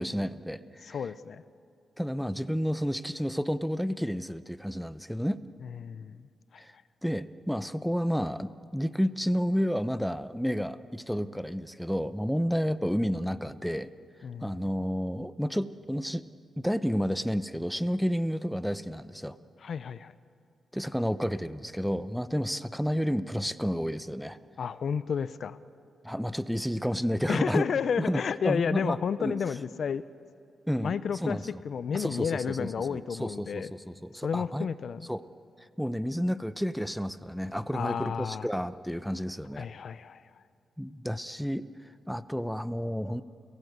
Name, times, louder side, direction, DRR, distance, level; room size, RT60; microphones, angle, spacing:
voice 1, 0.0-1.0 2.0-5.4 6.6-6.7 7.0-13.9 14.4-16.2 16.6-19.4 20.7-24.4 26.0-27.7 28.0-29.3 30.7-31.4 31.9-34.7 35.1-35.3 35.6-39.7 40.8-41.7 42.1-43.2, equal, ahead, 13 dB, 0.8 m, -31 dB
voice 2, 0.8-1.4 5.6-6.2 6.5-6.6 14.2-14.5 19.6-20.1 24.6-25.6 27.3-30.0 30.8-33.7 34.2-35.0 37.7-38.5 39.6-40.2, left 6 dB, 65° left, 15 dB, 0.7 m, -31 dB
29.5 x 17.0 x 8.2 m, 2.4 s
cardioid pair, 65°, 0 cm